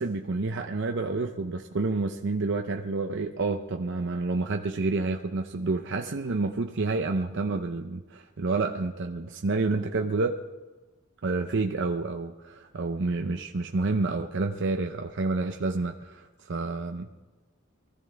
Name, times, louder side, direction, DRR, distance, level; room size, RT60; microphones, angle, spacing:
voice 1, 0.0-10.4 11.2-17.1, right 3 dB, 60° right, 4 dB, 0.6 m, -29 dB
22.5 x 14.5 x 3.4 m, 1.2 s
head